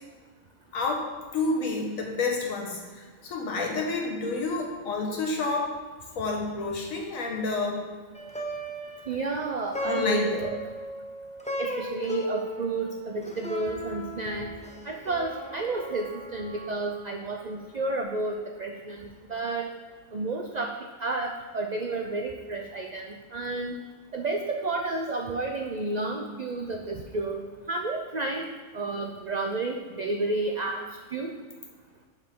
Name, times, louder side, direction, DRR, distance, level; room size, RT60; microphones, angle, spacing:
voice 1, 0.7-1.1 1.3-5.7 6.1-7.8 9.8-10.3, left 3 dB, 85° left, 0 dB, 1.6 m, -29 dB
Plucked string instrument, 8.1-17.6, equal, 10° left, 0.3 m, -37 dB
voice 2, 9.1-10.6 11.6-14.5 14.8-19.7 20.1-20.7 21.0-23.8 24.1-28.5 28.7-30.8 31.1-31.3, right 2 dB, 70° right, 3 dB, 0.4 m, -31 dB
7.3 x 6.1 x 3.7 m, 1.4 s
omnidirectional pair, 1.4 m